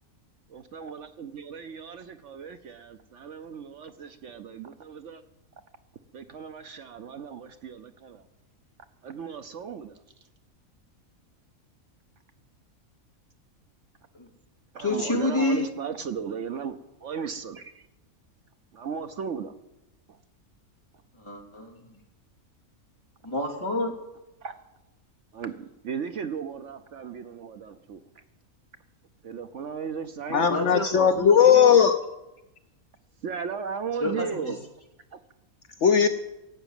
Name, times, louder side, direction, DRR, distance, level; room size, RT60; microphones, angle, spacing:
voice 1, 0.5-5.2 6.1-8.2 9.0-10.0 14.7-17.9 18.7-19.5 20.1-20.2 24.4-24.5 25.3-28.0 29.2-30.8 33.2-34.6 35.1-35.2, right 6 dB, 60° right, 9 dB, 1.0 m, -36 dB
voice 2, 14.8-15.7 21.2-21.8 23.2-23.9 30.5-31.6 34.0-34.5, left 2 dB, 20° left, -1 dB, 3.0 m, -29 dB
voice 3, 30.3-32.0 35.8-36.1, left 7 dB, 60° left, 8 dB, 1.0 m, -18 dB
17.0 x 8.1 x 8.9 m, 0.96 s
omnidirectional pair, 1.5 m